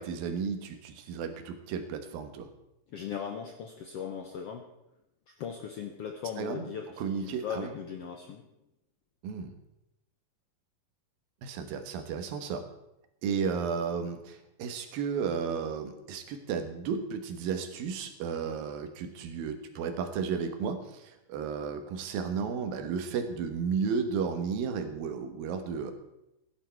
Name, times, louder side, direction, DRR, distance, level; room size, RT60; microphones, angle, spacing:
voice 1, 0.0-2.5 6.4-6.7 7.0-7.7 9.2-9.5 11.4-12.6 13.2-25.9, right 6 dB, 90° right, 7 dB, 3.1 m, -33 dB
voice 2, 2.9-4.7 5.3-8.4, left 7 dB, 75° left, 5 dB, 1.4 m, -38 dB
15.5 x 11.0 x 4.5 m, 0.89 s
omnidirectional pair, 4.0 m